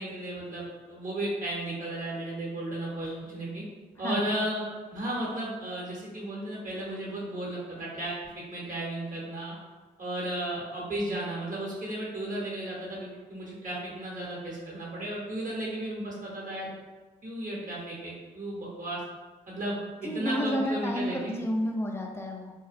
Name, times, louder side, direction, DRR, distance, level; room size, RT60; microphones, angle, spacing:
voice 1, 0.0-3.6 4.0-4.6 4.9-9.5 10.0-16.7 17.2-19.0 19.5-19.7 20.0-21.4, right 1 dB, 50° right, -4 dB, 1.0 m, -34 dB
voice 2, 20.0-22.5, equal, 15° left, 1 dB, 0.4 m, -30 dB
2.4 x 2.1 x 2.5 m, 1.3 s
hypercardioid pair, 45°, 18 cm